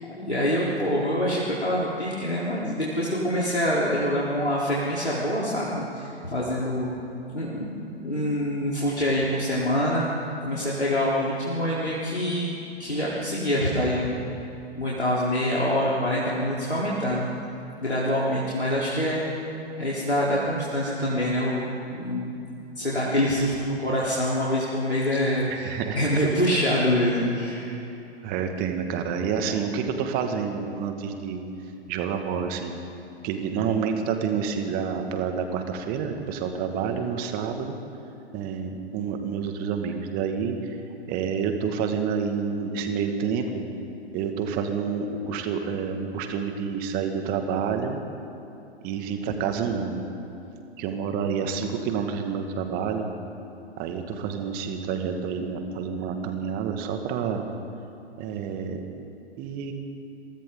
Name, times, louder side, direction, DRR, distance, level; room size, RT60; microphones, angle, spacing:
voice 1, 0.1-6.9 7.3-10.1 10.4-12.5 12.8-14.2 14.7-17.3 17.8-19.2 19.7-22.3 22.8-27.8, equal, 85° left, -7 dB, 4.2 m, -25 dB
voice 2, 25.5-26.0 28.2-31.4 31.9-32.7 33.2-37.8 38.3-40.6 41.1-43.6 44.1-48.0 48.8-50.0 50.8-53.1 53.8-57.4 58.2-58.8 59.4-59.7, right 6 dB, 25° right, 5 dB, 2.2 m, -28 dB
30.0 x 23.5 x 4.0 m, 2.7 s
figure-of-eight pair, 115°, 32 cm